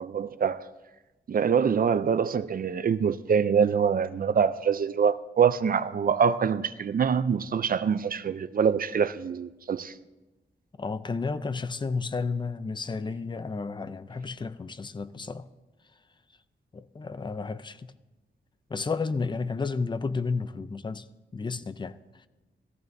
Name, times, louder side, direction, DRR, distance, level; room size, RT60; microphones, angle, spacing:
voice 1, 0.1-0.6 1.3-9.9, right 7 dB, 50° right, 0.4 m, -25 dB
voice 2, 10.8-15.5 16.7-17.9 18.7-21.1 21.3-22.3, left 4 dB, 25° left, 0.4 m, -32 dB
19.5 x 14.0 x 2.6 m
wide cardioid pair, 145°, 19 cm